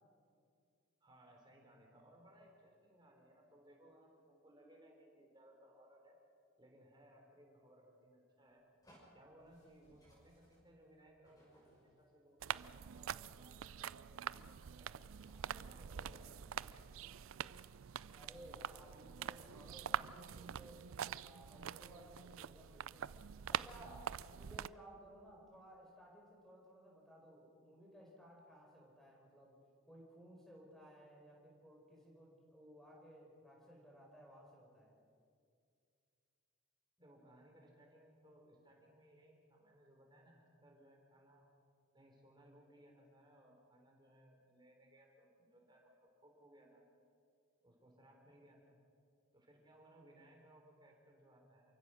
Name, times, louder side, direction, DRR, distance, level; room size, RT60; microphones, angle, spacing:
voice 1, 1.0-6.1 6.6-8.6 9.1-14.9 15.5-17.2 37.0-41.5 41.9-46.8 47.6-48.8 49.3-51.7, right 1 dB, 20° right, 1 dB, 3.9 m, -64 dB
sound 1, 8.8-12.3 13.1-13.2 14.3-14.6 15.1-15.7, equal, 20° left, 6.2 m, -67 dB
sound 2, 12.4-24.7, right 8 dB, 75° right, 0.4 m, -45 dB
voice 2, 18.1-20.9 21.2-23.1 23.5-29.5 29.8-34.9, equal, ahead, -2 dB, 4.8 m, -59 dB
28.0 x 16.0 x 6.4 m, 2.3 s
head